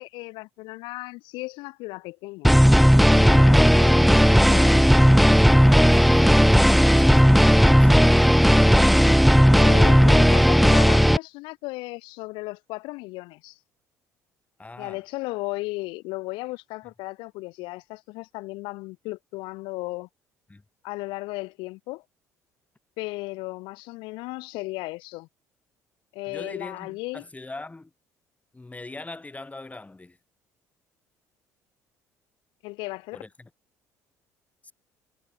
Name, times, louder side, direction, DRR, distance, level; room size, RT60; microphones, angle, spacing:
voice 1, 0.0-2.5 3.1-5.0 9.5-13.6 14.8-20.1 20.8-22.0 23.0-25.3 26.1-27.2 32.6-33.2, left 23 dB, 70° left, 1.1 m, -35 dB
sound 1, 2.4-11.2, equal, ahead, 0.5 m, -15 dB
voice 2, 5.6-8.4 14.6-15.0 20.5-20.6 26.3-27.9 28.5-30.2 33.1-33.5 34.6-34.7, left 2 dB, 15° left, 3.7 m, -40 dB
hypercardioid pair, 60°, 9 cm